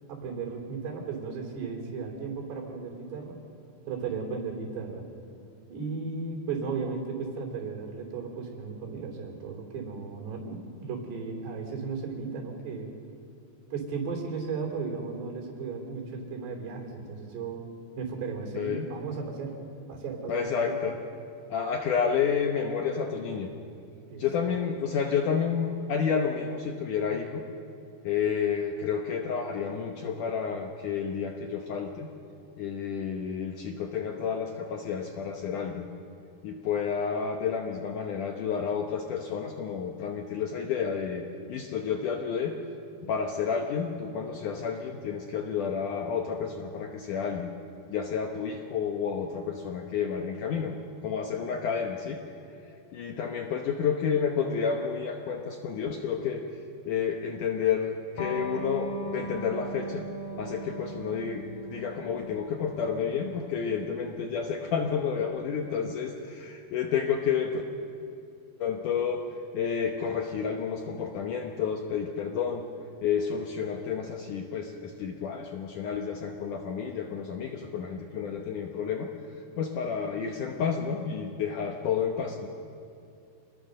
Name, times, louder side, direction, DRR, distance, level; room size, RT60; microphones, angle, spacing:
voice 1, 0.1-3.4 3.9-5.0 5.7-12.9 13.7-17.6 18.0-19.6 19.9-20.8 24.1-24.2, right 5 dB, 80° right, 1 dB, 5.4 m, -35 dB
voice 2, 18.6-18.9 20.3-21.0 21.5-23.5 24.2-27.4 28.0-32.1 32.6-35.9 36.4-41.2 41.5-42.6 43.0-47.5 47.9-50.8 51.0-52.2 52.9-56.4 56.9-60.1 60.4-67.6 68.6-69.2 69.5-72.6 73.0-79.1 79.6-82.5, left 6 dB, 70° left, 3 dB, 2.0 m, -30 dB
Electric guitar, 58.2-65.3, right 1 dB, 45° left, 3.2 m, -40 dB
26.5 x 20.5 x 6.6 m, 2.6 s
omnidirectional pair, 4.8 m